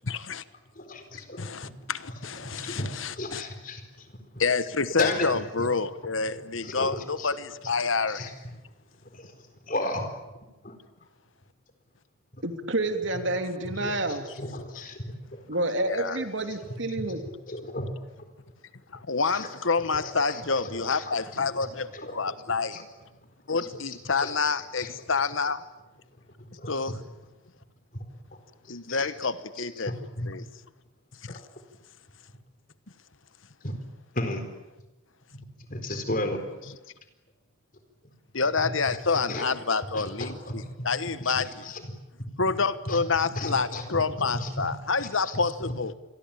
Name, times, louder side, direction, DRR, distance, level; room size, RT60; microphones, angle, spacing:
voice 1, 0.1-0.4 1.4-3.4 4.4-8.3 15.9-16.2 18.9-22.9 23.5-25.6 26.7-27.0 28.7-29.9 30.3-30.4 31.2-31.4 38.3-41.7 42.4-45.9, left 4 dB, 70° left, 14 dB, 1.2 m, -28 dB
voice 2, 0.8-1.7 2.4-4.1 5.0-5.7 6.6-7.3 8.1-8.3 9.1-10.0 10.6-10.7 12.3-12.4 13.1-13.2 13.6-15.4 17.0-17.1 17.5-17.9 19.3-19.5 20.0-21.1 21.5-22.2 22.7-22.8 23.6-23.7 24.2-24.9 26.6-26.8 27.9-28.0 28.6-29.3 29.6-30.3 31.3-31.4 33.6-33.7 34.1-34.4 35.3-35.4 35.7-36.4 38.9-40.9 41.2-41.9 42.9-43.0 43.4-43.8 44.2-44.7 45.0-45.4, left 2 dB, 40° left, 7 dB, 4.3 m, -35 dB
voice 3, 12.4-14.3 15.5-17.2, right 2 dB, 65° right, 6 dB, 3.1 m, -29 dB
28.0 x 22.5 x 8.9 m, 1.0 s
head